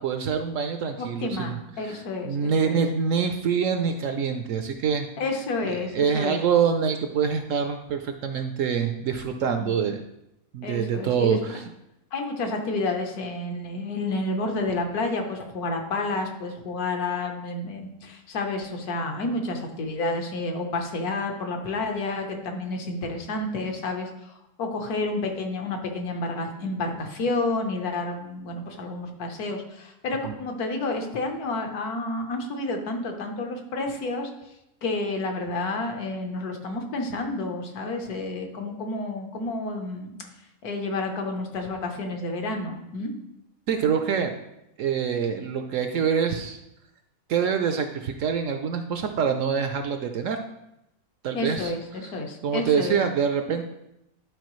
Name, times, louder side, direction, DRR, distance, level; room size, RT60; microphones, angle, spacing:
voice 1, 0.0-1.6 1.8-2.0 2.2-5.1 5.6-10.0 10.5-11.6 30.2-30.4 43.7-44.3 44.8-46.6 47.3-50.4 51.2-51.7 52.4-53.6, right 6 dB, 70° right, 6 dB, 0.8 m, -25 dB
voice 2, 1.0-2.8 5.2-6.4 9.6-9.8 10.6-11.4 12.1-34.3 34.8-40.2 40.6-43.1 51.3-53.0, left 2 dB, 75° left, 3 dB, 1.5 m, -30 dB
11.0 x 4.7 x 3.1 m, 0.86 s
omnidirectional pair, 1.7 m